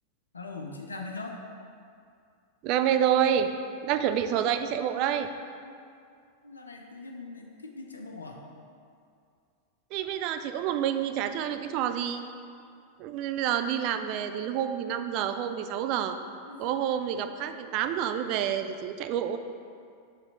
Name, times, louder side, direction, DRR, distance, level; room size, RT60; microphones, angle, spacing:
voice 1, 0.3-1.4 5.6-5.8 6.4-8.4 16.5-16.9, left 3 dB, 75° left, 2 dB, 0.5 m, -41 dB
voice 2, 2.6-3.5 3.8-5.3 9.9-12.2 13.0-16.2 16.6-19.4, right 9 dB, 40° right, 8 dB, 0.3 m, -28 dB
5.9 x 4.3 x 3.9 m, 2.3 s
figure-of-eight pair, 90°, 0 cm